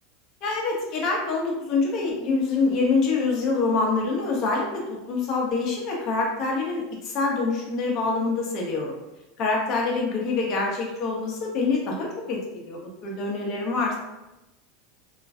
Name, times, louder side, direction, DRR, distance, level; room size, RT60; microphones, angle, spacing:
voice 1, 0.4-8.9 9.4-14.0, left 3 dB, 50° left, -1 dB, 0.8 m, -25 dB
2.9 x 2.5 x 2.4 m, 0.97 s
supercardioid pair, 115°, 0 cm